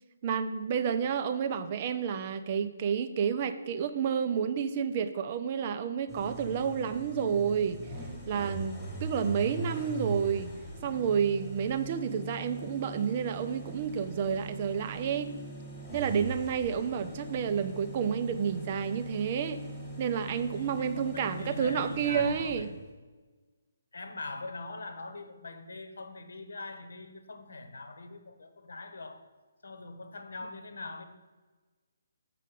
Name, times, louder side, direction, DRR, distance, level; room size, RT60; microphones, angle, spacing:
voice 1, 0.2-7.8 8.3-10.5 10.8-15.3 15.9-19.6 20.0-22.7, right 7 dB, 20° right, 11 dB, 0.3 m, -30 dB
sound 1, 6.1-22.9, right 2 dB, 5° left, 1.3 m, -41 dB
voice 2, 20.5-22.8 23.9-29.2 29.6-31.0, left 3 dB, 85° left, 8 dB, 1.2 m, -42 dB
7.4 x 5.3 x 6.7 m, 1.3 s
hypercardioid pair, 180°, 0 cm